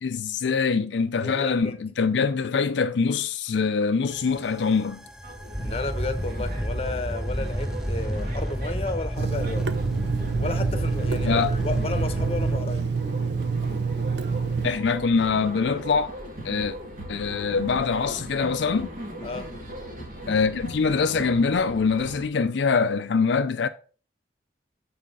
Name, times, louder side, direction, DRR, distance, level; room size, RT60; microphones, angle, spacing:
voice 1, 0.0-5.0 11.2-11.5 14.6-16.1 16.4-16.7 17.1-18.9 20.3-23.7, left 5 dB, 85° left, 0.4 m, -24 dB
voice 2, 1.2-1.8 5.6-9.7 10.4-12.9 19.2-19.5, left 2 dB, 35° left, 0.9 m, -32 dB
sound 1, 4.1-12.6, equal, 5° right, 0.4 m, -31 dB
sound 2, 5.2-22.3, right 1 dB, 50° right, 1.9 m, -39 dB
Water tap faucet / Sink (filling or washing), 9.2-14.7, right 5 dB, 75° right, 0.6 m, -27 dB
7.6 x 4.2 x 5.5 m
head